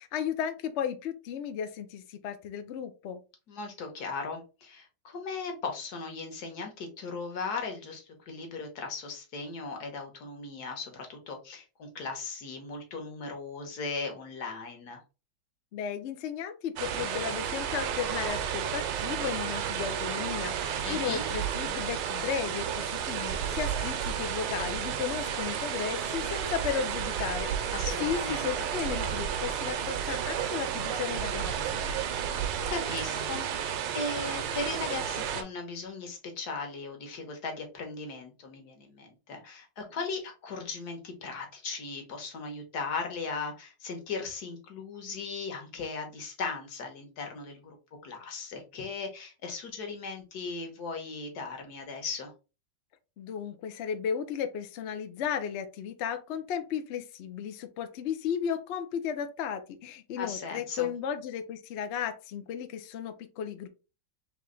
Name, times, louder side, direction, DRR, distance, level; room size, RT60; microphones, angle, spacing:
voice 1, 0.0-3.2 15.7-31.8 53.2-63.7, left 8 dB, 85° left, 7 dB, 0.6 m, -35 dB
voice 2, 3.5-15.0 20.8-21.3 27.7-28.7 32.0-32.2 32.7-47.8 48.0-52.3 60.2-60.9, left 4 dB, 60° left, 4 dB, 1.6 m, -38 dB
sound 1, 16.8-35.4, right 8 dB, 80° right, 1.3 m, -32 dB
3.5 x 3.2 x 3.7 m, 0.31 s
omnidirectional pair, 2.0 m